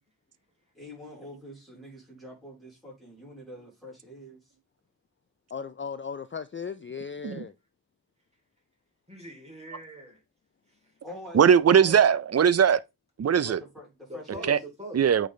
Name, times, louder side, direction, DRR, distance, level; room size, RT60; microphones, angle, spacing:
voice 1, 0.7-4.5 11.0-12.2 13.4-14.5, equal, ahead, 3.8 m, -44 dB
voice 2, 5.5-7.5, left 6 dB, 30° left, 0.4 m, -36 dB
voice 3, 9.1-10.2 14.1-15.0, equal, 15° right, 3.0 m, -42 dB
voice 4, 11.3-12.8 13.2-13.6 14.5-14.6 14.9-15.3, right 8 dB, 40° right, 0.5 m, -20 dB
8.6 x 4.0 x 3.1 m
wide cardioid pair, 85°, 40 cm